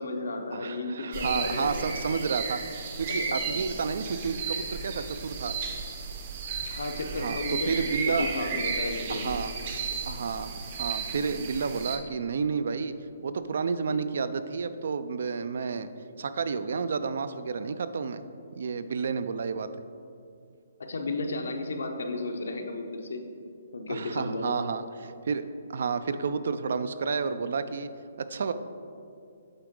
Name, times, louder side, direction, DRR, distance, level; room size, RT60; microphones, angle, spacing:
voice 1, 0.0-1.8 3.3-3.6 6.7-7.7 8.1-9.4 9.9-10.0 20.9-23.2 23.7-24.5, left 2 dB, 80° left, 4 dB, 0.7 m, -33 dB
voice 2, 0.5-5.5 7.2-8.4 9.1-9.6 10.1-12.9 13.2-15.9 16.2-18.2 18.6-19.7 23.9-27.9 28.2-28.5, right 5 dB, 65° right, 12 dB, 0.3 m, -31 dB
sound 1, 1.1-12.0, right 5 dB, 40° right, 0.7 m, -34 dB
8.0 x 3.8 x 3.7 m, 2.5 s
hypercardioid pair, 165°, 0 cm